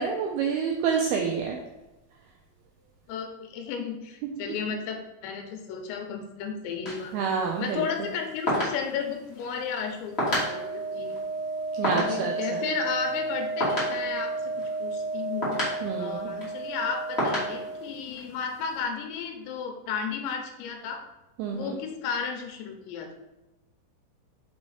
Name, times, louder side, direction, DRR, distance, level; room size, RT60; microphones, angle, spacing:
voice 1, 0.0-1.6 7.1-7.8 11.8-12.7 15.8-16.3 21.4-21.8, right 6 dB, 85° right, 1 dB, 2.2 m, -28 dB
voice 2, 3.1-7.1 7.6-11.1 11.9-14.5 14.8-15.7 16.0-21.0 21.5-23.1, left 6 dB, 85° left, 4 dB, 3.1 m, -33 dB
sound 1, 6.9-18.8, left 1 dB, 35° left, 1.0 m, -34 dB
Wind instrument woodwind instrument, 10.1-17.9, right 3 dB, 50° right, 2.3 m, -33 dB
6.2 x 4.8 x 4.2 m, 1.0 s
omnidirectional pair, 5.0 m